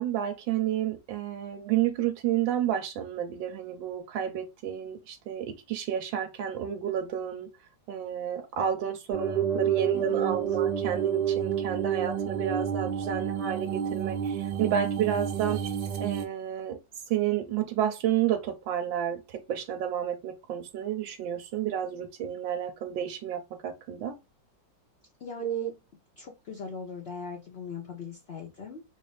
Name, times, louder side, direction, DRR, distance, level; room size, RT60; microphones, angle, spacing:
voice 1, 0.0-7.5 7.9-15.6 16.0-16.8 17.1-24.1 25.4-25.7, right 10 dB, 85° right, 1.4 m, -31 dB
sound 1, 9.1-16.3, right 8 dB, 65° right, 1.2 m, -29 dB
voice 2, 9.9-10.3 25.2-25.8 26.2-28.8, left 6 dB, 50° left, 0.7 m, -40 dB
3.9 x 2.6 x 3.2 m
omnidirectional pair, 2.0 m